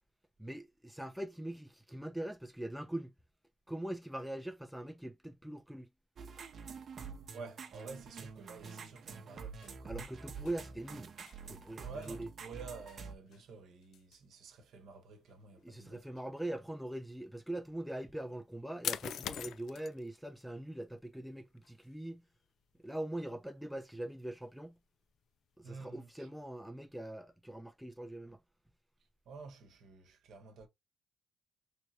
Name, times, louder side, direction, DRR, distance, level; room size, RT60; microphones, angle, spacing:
voice 1, 0.4-3.1 3.7-5.9 9.8-11.1 11.5-12.3 15.6-22.2 22.8-24.8 25.6-28.4, right 1 dB, ahead, 0.5 m, -42 dB
sound 1, 6.2-13.2, right 5 dB, 50° right, 0.8 m, -47 dB
voice 2, 7.3-10.1 11.8-16.1 25.6-26.3 29.2-30.7, right 4 dB, 75° right, 1.0 m, -50 dB
sound 2, 8.7-25.7, left 10 dB, 75° left, 0.3 m, -49 dB
3.3 x 3.2 x 2.8 m
cardioid pair, 100°, 0 cm